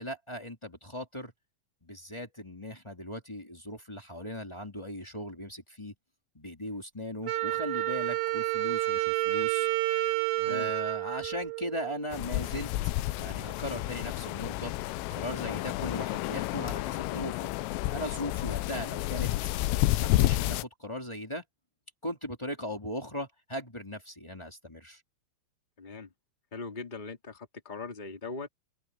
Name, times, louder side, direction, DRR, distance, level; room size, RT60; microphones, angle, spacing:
voice 1, 0.0-1.3 1.8-5.9 6.3-9.7 10.4-12.7 13.2-14.7 15.1-17.5 17.9-19.3 19.7-21.4 22.0-25.0, left 1 dB, 10° left, 1.5 m, -38 dB
Wind instrument woodwind instrument, 7.3-12.1, right 19 dB, 75° right, 3.1 m, -30 dB
voice 2, 10.4-10.7 25.8-26.1 26.5-28.5, left 4 dB, 60° left, 0.4 m, -40 dB
sound 1, 12.1-20.6, left 17 dB, 85° left, 3.2 m, -30 dB
open air
omnidirectional pair, 6.0 m